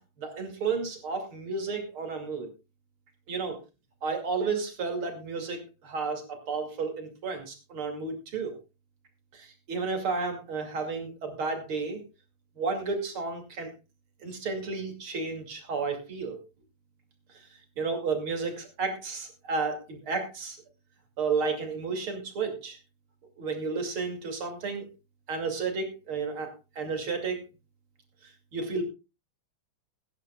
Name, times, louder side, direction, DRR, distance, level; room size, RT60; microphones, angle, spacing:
voice 1, 0.2-2.5 3.3-3.6 4.0-8.6 9.3-12.0 12.6-13.7 14.2-16.4 17.8-20.6 21.2-22.8 23.4-24.9 25.3-27.4 28.5-28.8, right 4 dB, 90° right, 4 dB, 3.4 m, -32 dB
21.5 x 10.5 x 2.3 m, 0.28 s
omnidirectional pair, 2.3 m